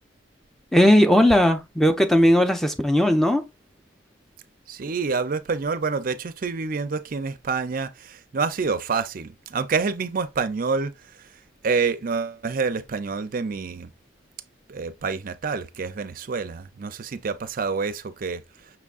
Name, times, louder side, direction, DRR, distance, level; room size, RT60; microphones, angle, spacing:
voice 1, 0.7-3.4, left 1 dB, ahead, 0.5 m, -17 dB
voice 2, 4.7-13.9 14.7-18.7, right 4 dB, 45° right, 0.5 m, -28 dB
5.9 x 3.6 x 2.4 m
head